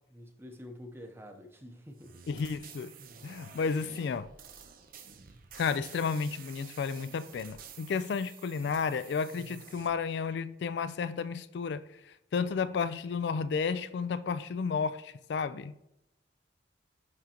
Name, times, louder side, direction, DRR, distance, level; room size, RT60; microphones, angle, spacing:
voice 1, 0.1-2.2, left 1 dB, 15° right, 0.8 m, -47 dB
sound 1, 2.0-9.9, right 6 dB, 50° right, 0.6 m, -51 dB
voice 2, 2.3-2.9 3.2-4.3 5.6-11.8 12.3-15.8, left 5 dB, 65° left, 0.3 m, -32 dB
10.5 x 3.7 x 2.9 m
head